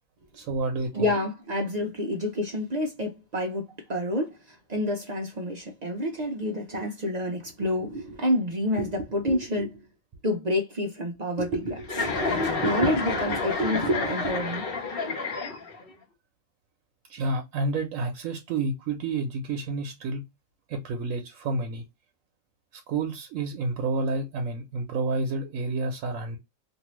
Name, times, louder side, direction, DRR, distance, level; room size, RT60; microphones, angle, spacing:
voice 1, 0.3-1.1 17.1-20.2 20.7-21.8 22.7-26.4, right 3 dB, 80° right, 1.0 m, -29 dB
voice 2, 0.9-9.7 10.2-14.7, left 1 dB, 50° right, 0.5 m, -28 dB
Chuckle chortle, 11.8-15.9, left 3 dB, 50° left, 1.0 m, -29 dB
2.6 x 2.6 x 2.9 m
omnidirectional pair, 1.4 m